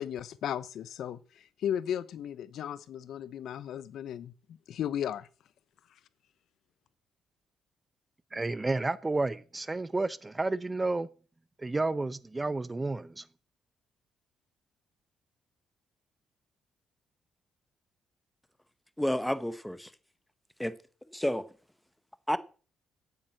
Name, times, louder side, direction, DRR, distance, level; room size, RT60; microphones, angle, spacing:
voice 1, 0.0-4.3 4.7-5.3, left 9 dB, 70° left, 0.7 m, -35 dB
voice 2, 8.3-11.1 11.6-13.3, right 2 dB, 20° right, 0.7 m, -31 dB
voice 3, 19.0-19.9 20.6-20.8 21.1-21.4 22.3-22.4, equal, 5° left, 1.0 m, -30 dB
8.9 x 8.6 x 7.8 m
cardioid pair, 90°, 0 cm